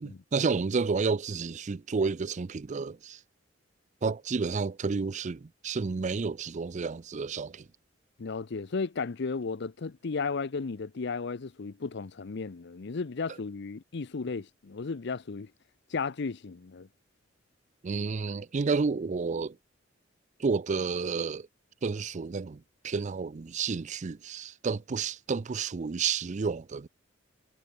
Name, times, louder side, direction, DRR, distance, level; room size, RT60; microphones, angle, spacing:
voice 1, 0.0-3.2 4.0-7.7 17.8-19.6 20.4-21.5 21.8-26.9, right 4 dB, 40° right, 0.4 m, -31 dB
voice 2, 8.2-15.5 15.9-16.9, left 4 dB, 65° left, 0.6 m, -34 dB
head